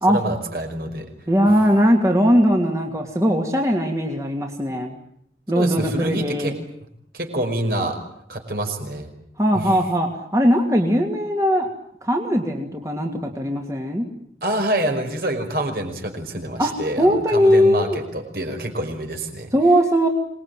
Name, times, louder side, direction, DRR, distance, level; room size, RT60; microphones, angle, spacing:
voice 1, 0.1-1.1 5.5-6.6 7.1-8.0 8.3-9.1 9.5-9.7 14.4-19.5, right 1 dB, 55° right, 4 dB, 5.4 m, -26 dB
voice 2, 1.3-5.0 5.5-6.5 9.4-11.7 12.0-14.1 16.6-18.0 19.5-20.1, equal, 20° right, 1 dB, 2.7 m, -19 dB
26.5 x 20.5 x 9.3 m, 0.71 s
head